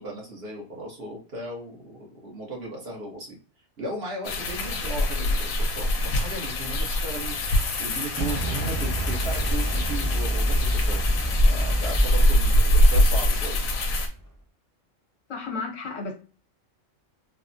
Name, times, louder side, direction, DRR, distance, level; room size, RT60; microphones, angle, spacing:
voice 1, 0.0-3.4 3.8-7.3 7.8-11.0 11.5-13.6, right 2 dB, 50° right, -2 dB, 1.2 m, -36 dB
sound 1, 4.2-14.1, left 1 dB, 90° left, 1.1 m, -24 dB
Explosion, 8.2-14.2, equal, 25° right, 0.5 m, -27 dB
voice 2, 15.3-16.1, left 4 dB, 70° left, 1 dB, 1.2 m, -32 dB
3.2 x 2.1 x 2.5 m, 0.36 s
omnidirectional pair, 1.4 m